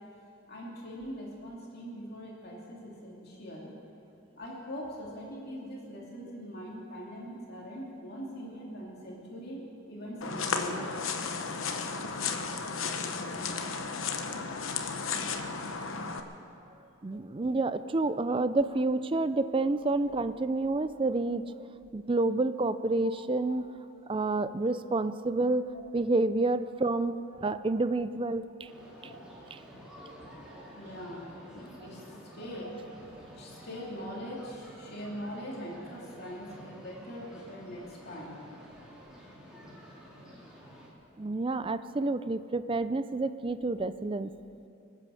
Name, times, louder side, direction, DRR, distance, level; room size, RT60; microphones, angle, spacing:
voice 1, 0.5-3.7 4.4-10.9 29.0-29.2 30.8-32.0 32.3-32.7 33.4-38.4, equal, 50° left, -3 dB, 2.8 m, -42 dB
sound 1, 10.2-16.2, left 5 dB, 70° left, 1.0 m, -34 dB
voice 2, 17.0-21.7 21.9-23.7 24.1-25.7 25.9-27.2 27.4-28.7 41.2-44.3, right 2 dB, 25° right, 13 dB, 0.4 m, -29 dB
sound 2, 28.7-40.9, equal, 5° right, 2.8 m, -50 dB
24.5 x 8.3 x 6.9 m, 2.7 s
head